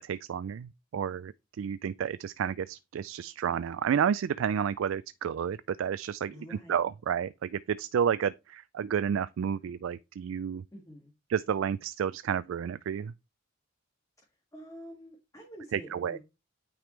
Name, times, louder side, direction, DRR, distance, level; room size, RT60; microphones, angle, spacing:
voice 1, 0.0-10.6 11.3-13.1 15.7-16.2, right 8 dB, 70° right, 0.3 m, -31 dB
voice 2, 6.3-6.8 10.7-11.1 14.5-16.2, equal, 15° left, 1.9 m, -47 dB
9.2 x 5.0 x 3.2 m
head